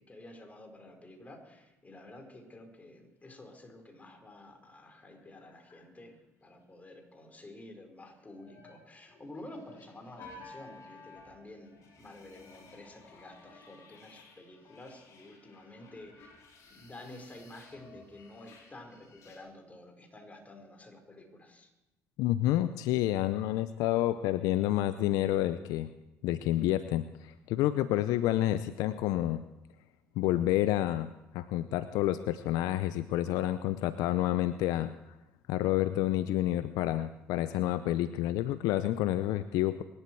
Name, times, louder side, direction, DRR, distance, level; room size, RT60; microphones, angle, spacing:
voice 1, 0.0-16.4 16.7-21.7, left 1 dB, 25° left, 4 dB, 4.5 m, -50 dB
sound 1, 3.2-3.7 3.9-4.0 4.3-6.1 8.1-19.4, left 3 dB, 55° left, 4.9 m, -55 dB
voice 2, 22.2-25.9 26.2-29.4 30.2-31.1 31.3-34.9 35.5-39.8, left 14 dB, 75° left, 13 dB, 0.6 m, -29 dB
24.5 x 12.0 x 4.6 m, 0.93 s
hypercardioid pair, 60°, 6 cm